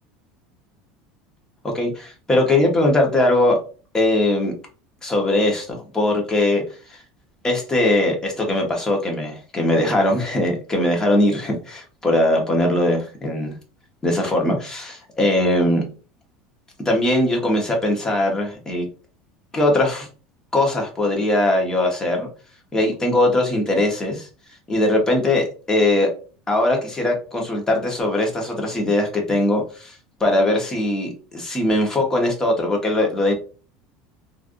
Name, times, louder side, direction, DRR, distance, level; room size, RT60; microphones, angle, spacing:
voice 1, 1.7-3.6 3.9-4.5 5.0-6.6 6.9-7.0 7.4-13.5 14.0-15.8 16.8-18.9 19.5-20.1 20.5-22.3 22.7-24.3 24.7-26.1 26.5-29.9 30.2-33.3, left 1 dB, 15° left, 1 dB, 1.1 m, -20 dB
3.2 x 2.5 x 2.5 m, 0.37 s
supercardioid pair, 110°, 3 cm